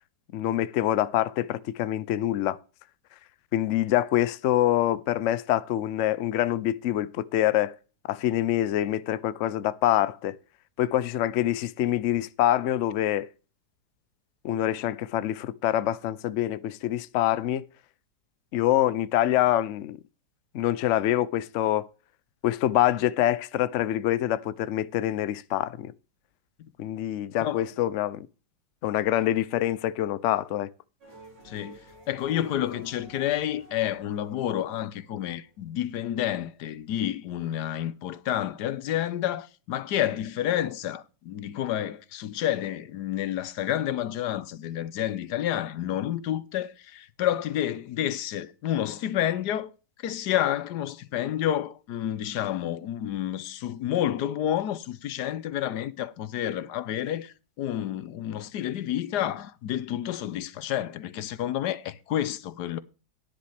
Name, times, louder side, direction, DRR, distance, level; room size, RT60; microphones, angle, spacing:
voice 1, 0.3-2.6 3.5-7.8 8.1-10.4 10.8-13.3 14.4-17.6 18.5-20.0 20.5-21.9 22.4-25.9 26.8-28.3 28.8-30.7, left 13 dB, 90° left, 0.6 m, -25 dB
sound 1, 31.0-35.7, right 2 dB, 70° right, 4.7 m, -52 dB
voice 2, 31.4-31.8 32.1-49.7 50.0-62.8, left 11 dB, 65° left, 1.2 m, -29 dB
11.5 x 10.0 x 3.4 m
omnidirectional pair, 2.0 m